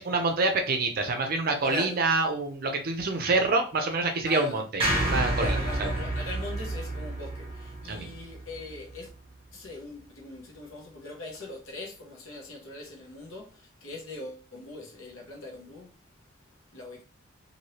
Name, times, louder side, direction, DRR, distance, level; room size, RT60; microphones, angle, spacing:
voice 1, 0.0-5.9 7.9-8.1, right 3 dB, 45° right, 0.5 m, -27 dB
voice 2, 1.6-2.0 4.3-4.6 5.4-9.1 9.5-15.9 16.7-17.0, left 2 dB, 80° left, 0.9 m, -40 dB
sound 1, 4.8-9.1, right 1 dB, 25° right, 1.0 m, -30 dB
3.1 x 2.7 x 2.8 m
head